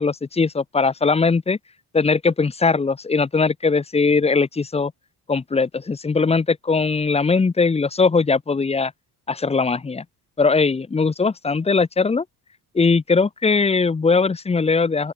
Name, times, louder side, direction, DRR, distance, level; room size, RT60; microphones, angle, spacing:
voice 1, 0.0-1.6 1.9-4.9 5.3-8.9 9.3-10.0 10.4-12.2 12.7-15.1, left 4 dB, 20° left, 1.7 m, -20 dB
open air
cardioid pair, 150°, 33 cm